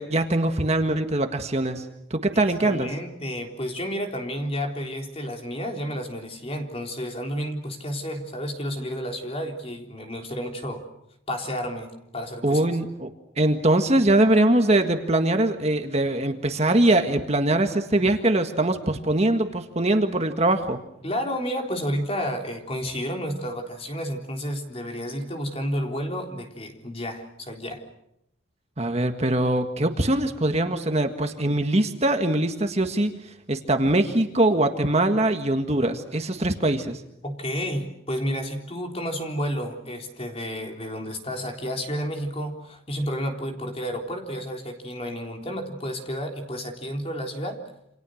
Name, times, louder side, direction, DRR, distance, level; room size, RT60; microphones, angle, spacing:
voice 1, 0.0-2.9 12.4-13.1 13.4-20.8 28.8-37.0, right 1 dB, 30° right, 6 dB, 1.7 m, -22 dB
voice 2, 2.3-10.9 11.3-12.6 21.0-27.8 37.2-47.6, equal, 30° left, 3 dB, 3.8 m, -31 dB
29.0 x 27.0 x 6.5 m, 0.80 s
head